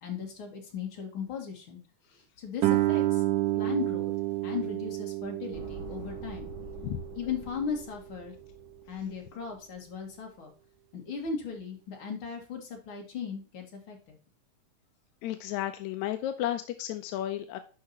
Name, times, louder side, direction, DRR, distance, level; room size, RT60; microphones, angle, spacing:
voice 1, 0.0-1.8 2.1-3.2 3.5-4.1 4.4-6.5 7.2-8.3 8.9-10.5 10.9-14.2, left 6 dB, 45° left, 2 dB, 2.4 m, -37 dB
Guitar, 2.6-8.0, right 16 dB, 85° right, 2.2 m, -30 dB
sound 1, 5.5-9.8 10.1-10.2, left 1 dB, 20° left, 3.2 m, -47 dB
voice 2, 15.2-17.6, left 12 dB, 75° left, 8 dB, 1.7 m, -33 dB
11.5 x 4.7 x 2.8 m, 0.36 s
omnidirectional pair, 3.8 m